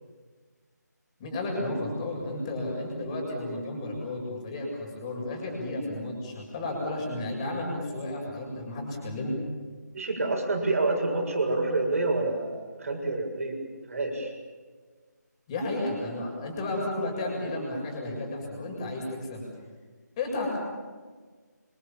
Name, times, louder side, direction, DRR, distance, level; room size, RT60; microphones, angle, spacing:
voice 1, 1.2-9.4 15.5-19.4 20.2-20.6, left 2 dB, 20° left, 0 dB, 7.1 m, -32 dB
voice 2, 9.9-13.6 13.9-14.3, right 2 dB, 50° right, 2 dB, 6.8 m, -28 dB
26.5 x 26.0 x 7.5 m, 1.4 s
figure-of-eight pair, 165°, 10 cm